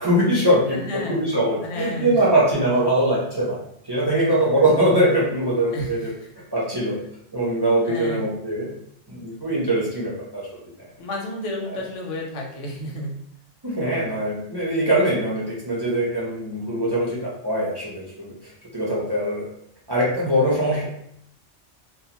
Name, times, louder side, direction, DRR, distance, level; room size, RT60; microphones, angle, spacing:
voice 1, 0.0-3.6 3.8-6.0 6.5-7.0 7.3-8.7 9.1-10.5 11.7-11.8 13.6-18.3 18.7-19.5 19.9-20.8, right 1 dB, 25° right, -6 dB, 0.5 m, -22 dB
voice 2, 0.7-1.2 1.6-2.3 5.7-6.3 7.8-8.2 11.0-13.2, left 1 dB, 85° left, 0 dB, 1.0 m, -31 dB
2.4 x 2.3 x 2.8 m, 0.72 s
omnidirectional pair, 1.2 m